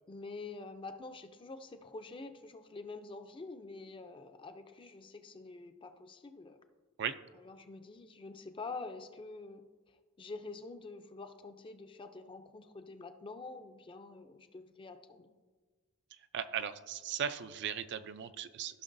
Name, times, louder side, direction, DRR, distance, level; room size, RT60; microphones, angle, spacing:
voice 1, 0.1-6.6 7.4-15.3, left 3 dB, 20° left, 8 dB, 0.4 m, -47 dB
voice 2, 16.3-18.8, right 8 dB, 50° right, 11 dB, 0.3 m, -37 dB
14.5 x 5.9 x 2.6 m, 1.4 s
head